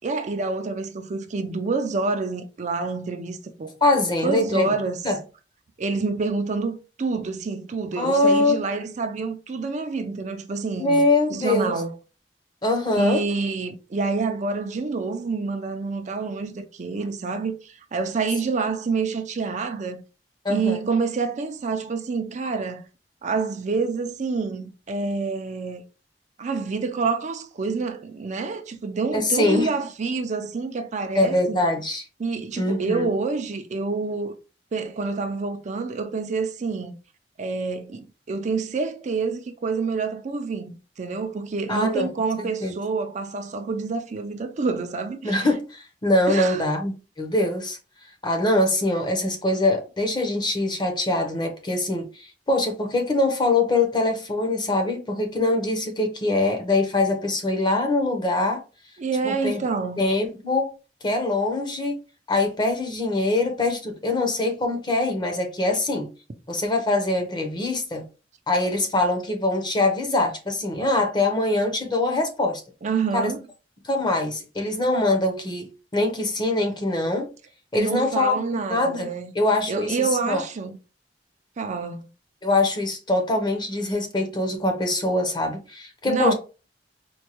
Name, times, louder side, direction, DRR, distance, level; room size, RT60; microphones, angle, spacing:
voice 1, 0.0-3.7 4.2-5.0 5.8-11.0 11.3-12.0 12.9-20.0 20.5-22.9 23.2-25.8 26.4-31.6 32.2-34.3 34.7-37.0 37.4-45.5 46.3-46.6 59.0-60.1 72.8-73.4 77.7-79.3 79.7-80.8 81.6-82.1 86.1-86.3, right 4 dB, 45° right, 0.4 m, -27 dB
voice 2, 3.8-4.7 5.0-5.2 8.0-8.6 10.8-11.8 12.6-13.2 20.4-20.8 29.1-29.7 31.1-32.0 32.6-33.1 41.7-42.1 42.4-42.7 45.2-47.8 48.2-58.6 59.2-59.6 60.0-60.7 61.0-62.0 62.3-66.1 66.5-68.0 68.5-72.6 73.1-73.3 73.8-77.3 77.7-79.1 79.3-80.4 82.4-86.3, left 2 dB, 25° left, 0.8 m, -23 dB
4.3 x 2.2 x 2.9 m
head